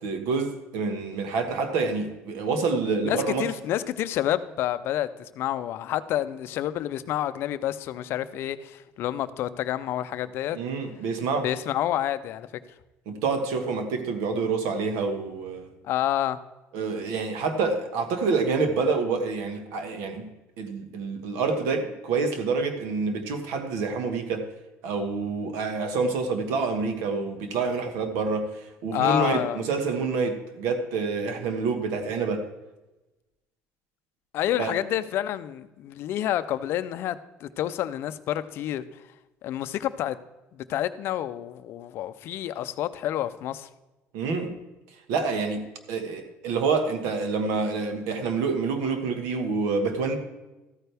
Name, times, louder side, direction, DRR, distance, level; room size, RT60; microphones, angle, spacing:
voice 1, 0.0-3.5 10.5-11.5 13.1-15.7 16.7-20.3 20.6-24.5 24.8-32.5 34.6-34.7 44.1-44.5 45.1-45.6 45.9-50.2, right 4 dB, 90° right, 7 dB, 1.4 m, -27 dB
voice 2, 3.0-10.6 11.4-12.5 15.8-16.4 28.9-29.6 34.3-39.0 39.4-40.2 40.5-43.7, left 12 dB, 50° left, 13 dB, 0.5 m, -29 dB
13.5 x 9.0 x 3.4 m, 1.1 s
cardioid pair, 170°, 5 cm